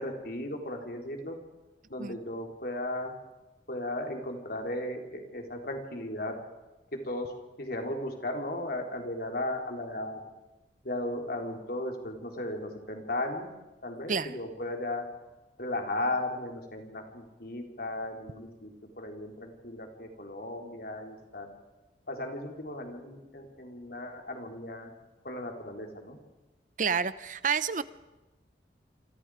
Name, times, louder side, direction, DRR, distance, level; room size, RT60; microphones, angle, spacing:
voice 1, 0.0-1.3 1.9-3.1 3.7-6.3 7.1-7.3 7.6-10.2 10.8-13.5 13.8-15.0 15.6-21.5 22.1-24.9 25.2-26.2, left 1 dB, 55° left, 2 dB, 4.0 m, -36 dB
voice 2, 26.8-27.8, right 6 dB, 45° right, 15 dB, 0.7 m, -29 dB
28.0 x 26.0 x 5.0 m, 1.0 s
head